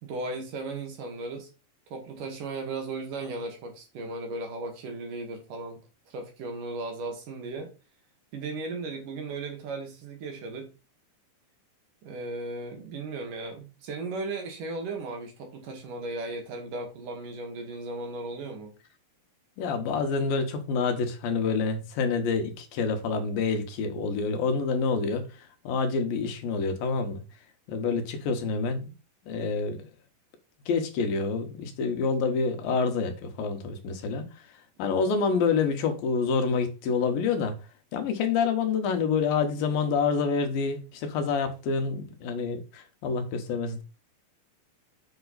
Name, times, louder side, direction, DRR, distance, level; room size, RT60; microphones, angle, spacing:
voice 1, 0.0-1.5 1.9-5.8 6.1-7.7 8.3-10.7 12.0-18.8, right 3 dB, 70° right, 3.4 m, -36 dB
voice 2, 19.6-27.2 27.7-28.9 29.3-29.9 30.7-34.3 34.8-37.6 37.9-43.8, left 5 dB, 85° left, 3.0 m, -27 dB
7.6 x 5.8 x 4.1 m
omnidirectional pair, 4.0 m